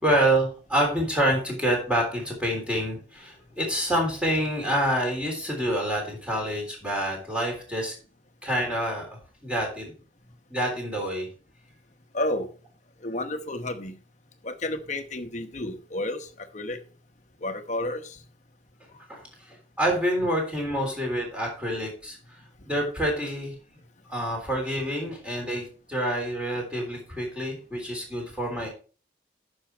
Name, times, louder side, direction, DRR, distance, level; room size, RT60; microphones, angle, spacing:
voice 1, 0.0-7.9 8.4-9.1 9.4-9.9 10.5-11.3 19.1-19.2 19.8-22.2 22.6-23.5 24.1-28.7, right 1 dB, 5° right, 0 dB, 3.4 m, -27 dB
voice 2, 12.1-12.5 13.0-13.9 14.4-16.8 17.4-18.2, left 1 dB, 35° left, 8 dB, 1.0 m, -31 dB
9.9 x 6.3 x 4.5 m, 0.38 s
head